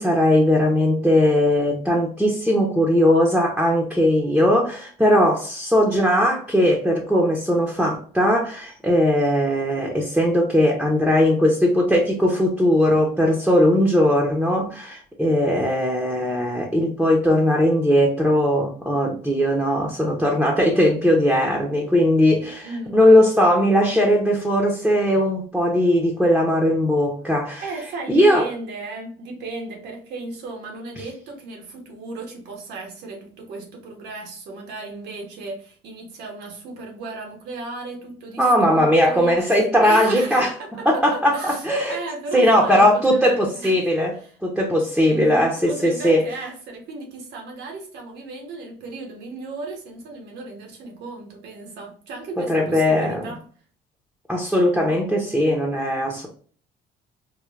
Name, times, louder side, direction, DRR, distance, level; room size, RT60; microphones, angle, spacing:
voice 1, 0.0-27.6 28.1-28.4 38.4-40.5 40.8-42.0 42.3-44.1 44.4-46.2 52.4-53.3 54.3-56.3, left 1 dB, ahead, 0.8 m, -19 dB
voice 2, 22.6-23.0 27.6-39.6 39.8-43.8 44.2-44.3 45.1-53.4, right 3 dB, 80° right, 1.2 m, -35 dB
4.5 x 2.4 x 2.4 m
cardioid pair, 110°, 17 cm